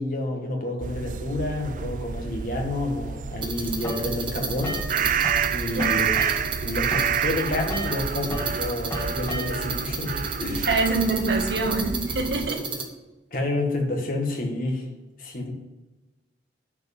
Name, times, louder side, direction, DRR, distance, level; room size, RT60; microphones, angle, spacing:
voice 1, 0.0-5.2 5.5-6.3 6.6-10.7 13.3-14.9 15.2-15.5, left 2 dB, 50° left, 1 dB, 1.8 m, -29 dB
sound 1, 0.8-12.5, right 8 dB, 45° right, 0.4 m, -29 dB
sound 2, 3.4-12.9, right 4 dB, 30° right, 1.1 m, -33 dB
sound 3, 3.8-5.5 5.8-9.8, equal, 15° left, 1.9 m, -34 dB
voice 2, 10.6-12.6, right 3 dB, 75° right, 3 dB, 1.5 m, -25 dB
9.4 x 4.7 x 7.4 m, 1.1 s
head